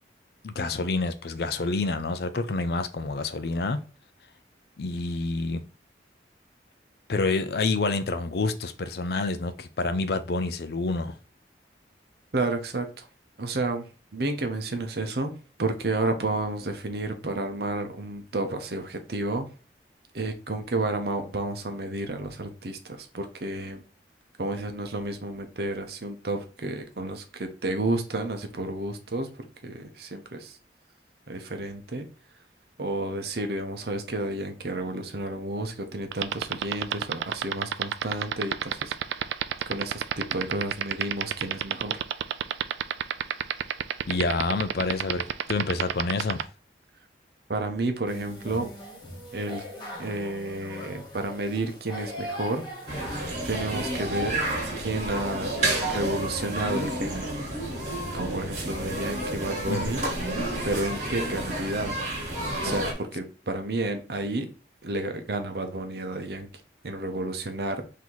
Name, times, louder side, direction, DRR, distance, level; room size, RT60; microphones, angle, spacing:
voice 1, 0.4-3.8 4.8-5.6 7.1-11.2 44.1-46.4 59.7-60.1, left 3 dB, 60° left, 0.5 m, -28 dB
voice 2, 12.3-13.1 13.4-13.9 14.1-15.3 15.6-19.5 20.1-23.8 24.4-30.6 31.3-32.1 32.8-39.2 39.7-42.0 47.5-48.7 49.3-49.6 50.0-52.6 53.4-54.4 54.8-55.6 55.9-57.3 58.1-60.0 60.6-62.0 62.6-64.5 64.8-66.5 66.8-67.8, right 2 dB, 60° right, 0.8 m, -31 dB
sound 1, 36.1-46.4, right 10 dB, 80° right, 0.3 m, -26 dB
sound 2, 48.1-53.3, equal, 25° left, 1.1 m, -40 dB
sound 3, 52.9-62.9, right 1 dB, 45° right, 1.6 m, -30 dB
3.9 x 2.8 x 4.5 m
head